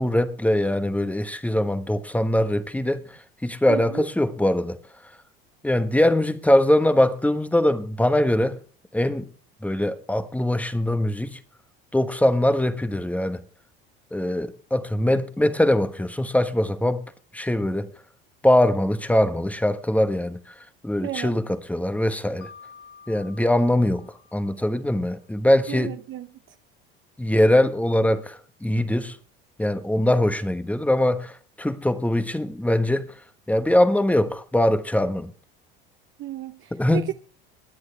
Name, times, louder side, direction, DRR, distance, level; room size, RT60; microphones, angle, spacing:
voice 1, 0.0-5.1 5.6-8.6 8.9-9.3 9.6-11.4 11.9-13.4 14.1-17.9 18.4-22.5 23.1-26.0 27.2-29.2 29.6-33.2 33.5-35.3 36.7-37.1, left 1 dB, 5° left, 1.2 m, -22 dB
voice 2, 3.7-4.1 21.0-21.3 25.7-26.3 36.2-37.1, right 13 dB, 45° right, 0.7 m, -33 dB
Mallet percussion, 22.4-25.2, left 6 dB, 60° left, 2.7 m, -50 dB
22.5 x 9.6 x 3.4 m
hypercardioid pair, 90°, 29 cm